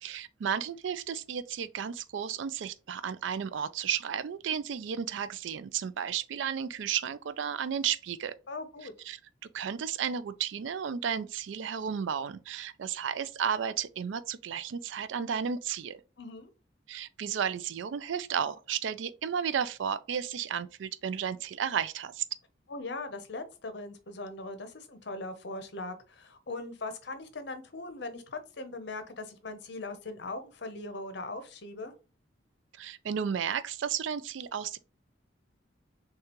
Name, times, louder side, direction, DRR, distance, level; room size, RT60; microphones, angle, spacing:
voice 1, 0.0-8.4 9.1-9.2 9.5-16.0 16.9-22.2 32.8-34.8, right 7 dB, 70° right, 0.3 m, -33 dB
voice 2, 8.5-8.9 16.2-16.5 22.7-31.9, left 2 dB, 60° left, 0.7 m, -40 dB
6.4 x 2.3 x 2.9 m
head